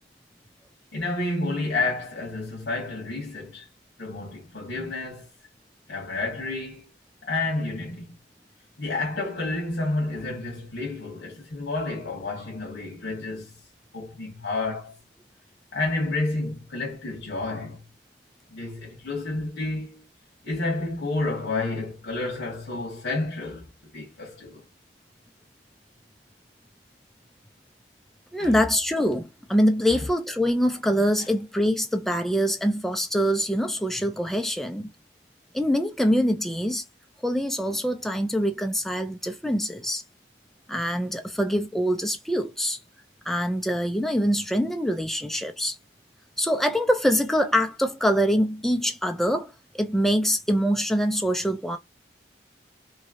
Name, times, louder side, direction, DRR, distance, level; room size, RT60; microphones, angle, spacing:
voice 1, 0.9-3.7 4.0-5.3 5.9-6.9 7.2-8.1 8.8-13.5 13.9-14.9 15.7-17.8 18.5-20.0 20.4-23.7 23.9-24.6 28.4-28.5 29.9-30.0 31.2-31.3, left 2 dB, 75° left, 1.2 m, -30 dB
voice 2, 28.3-34.9 35.5-36.8 37.2-40.0 40.7-42.8 43.3-45.8 46.4-51.8, equal, ahead, 0.4 m, -24 dB
3.1 x 2.7 x 2.5 m
head